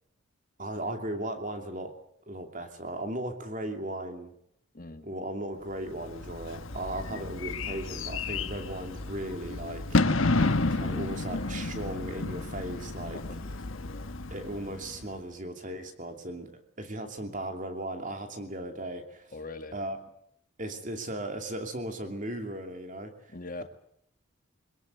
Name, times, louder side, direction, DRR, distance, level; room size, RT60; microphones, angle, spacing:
voice 1, 0.6-1.9 2.3-4.3 5.0-10.2 10.7-13.2 14.3-19.3 19.7-20.0 20.6-23.3, right 1 dB, 40° right, 6 dB, 2.8 m, -37 dB
voice 2, 4.7-5.1 7.1-7.2 8.6-8.7 13.1-14.2 19.3-19.8 23.3-23.6, left 2 dB, 40° left, 8 dB, 1.6 m, -43 dB
Bird / Fireworks, 5.9-15.1, left 3 dB, 75° left, 1.3 m, -31 dB
22.5 x 18.0 x 9.5 m, 0.74 s
head